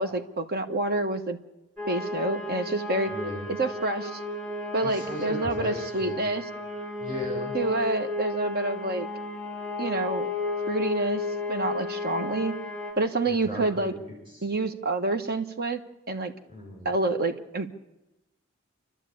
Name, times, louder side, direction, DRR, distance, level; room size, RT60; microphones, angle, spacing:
voice 1, 0.0-1.4 1.9-3.1 3.6-4.2 4.7-6.4 7.5-9.1 9.8-10.3 10.7-11.2 11.5-12.5 13.0-13.9 14.4-15.8 16.1-16.3 16.8-17.7, right 2 dB, 50° right, 7 dB, 1.4 m, -27 dB
sound 1, 1.8-12.9, left 3 dB, 5° left, 4.1 m, -33 dB
voice 2, 3.1-3.5 4.8-6.3 7.0-7.5 13.2-14.5 16.5-17.0, left 1 dB, 25° right, -2 dB, 7.9 m, -37 dB
28.0 x 12.5 x 8.7 m, 0.99 s
head